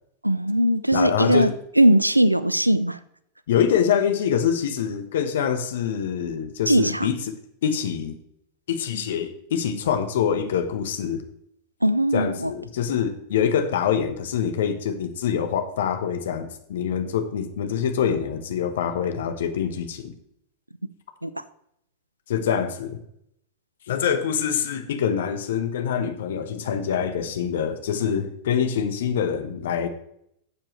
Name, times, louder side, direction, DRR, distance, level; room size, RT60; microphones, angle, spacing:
voice 1, 0.2-1.5 1.8-3.0 6.7-7.1 11.8-12.5 21.2-21.4, right 1 dB, 85° right, 15 dB, 0.4 m, -20 dB
voice 2, 0.9-1.5 3.5-7.4 7.6-8.1 8.7-11.2 12.1-20.1 22.3-23.0 23.9-29.9, left 8 dB, 60° left, 8 dB, 1.1 m, -25 dB
12.0 x 7.3 x 3.2 m, 0.74 s
figure-of-eight pair, 90°, 0 cm